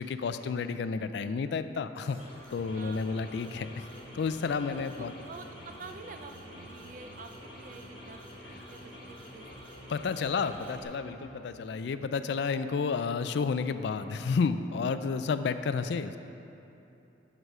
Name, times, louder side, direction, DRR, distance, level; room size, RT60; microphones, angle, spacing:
voice 1, 0.0-2.2 2.5-3.9 4.1-5.1 9.9-16.2, left 5 dB, 60° left, 11 dB, 0.3 m, -31 dB
sound 1, 2.0-10.8, left 1 dB, 25° left, 1.3 m, -49 dB
sound 2, 2.6-11.9, right 1 dB, 85° right, 1.0 m, -51 dB
voice 2, 2.8-3.2 5.0-9.5, right 4 dB, 40° right, 7 dB, 0.4 m, -48 dB
8.0 x 6.2 x 5.4 m, 2.9 s
head